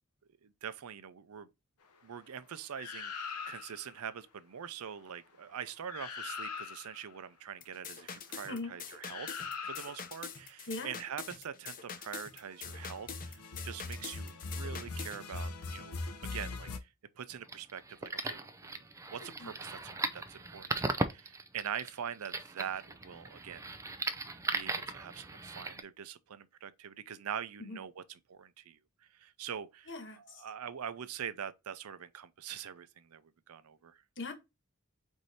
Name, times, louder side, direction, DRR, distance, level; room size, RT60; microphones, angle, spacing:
voice 1, 0.4-1.5 2.0-9.4 9.7-16.0 16.3-16.9 17.2-18.8 19.1-23.7 24.5-28.8 29.1-34.0, right 8 dB, 75° right, 0.5 m, -44 dB
sound 1, 2.7-3.9 5.6-5.7 5.9-7.0 9.0-10.2 12.5-16.8, left 4 dB, 85° left, 0.8 m, -41 dB
sound 2, 7.6-15.2, left 6 dB, 40° left, 0.7 m, -45 dB
voice 2, 10.7-11.0 19.2-19.5 27.6-27.8 29.9-30.4 34.2-34.3, left 2 dB, 60° left, 1.2 m, -41 dB
sound 3, 17.3-25.8, right 3 dB, 15° right, 0.4 m, -38 dB
4.7 x 2.7 x 4.1 m
head